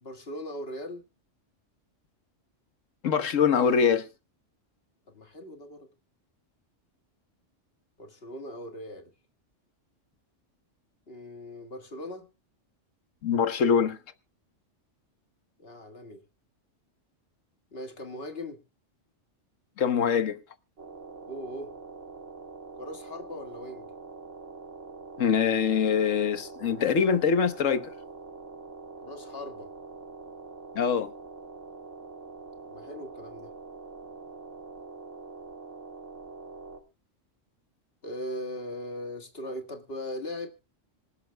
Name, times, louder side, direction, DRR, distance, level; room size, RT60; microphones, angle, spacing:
voice 1, 0.0-1.0 5.1-5.9 8.0-9.1 11.1-12.3 15.6-16.2 17.7-18.6 21.3-21.7 22.7-23.9 29.0-29.7 32.7-33.5 38.0-40.5, left 1 dB, 50° left, 2.0 m, -39 dB
voice 2, 3.0-4.1 13.2-14.0 19.8-20.4 25.2-27.9 30.7-31.1, left 6 dB, 85° left, 1.4 m, -24 dB
sound 1, 20.8-36.8, right 4 dB, 75° right, 2.2 m, -44 dB
26.0 x 11.5 x 2.2 m
omnidirectional pair, 1.3 m